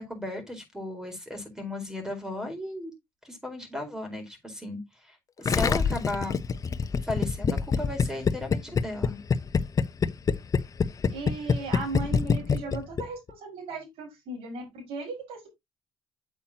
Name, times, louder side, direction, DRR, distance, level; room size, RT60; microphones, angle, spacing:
voice 1, 0.0-2.9 3.2-6.4 7.0-9.2, left 1 dB, 5° right, 4.4 m, -35 dB
Gurgling, 5.5-13.3, left 6 dB, 35° left, 0.8 m, -25 dB
voice 2, 11.1-15.5, right 3 dB, 85° right, 5.7 m, -37 dB
8.4 x 7.4 x 2.9 m
cardioid pair, 105°, 10 cm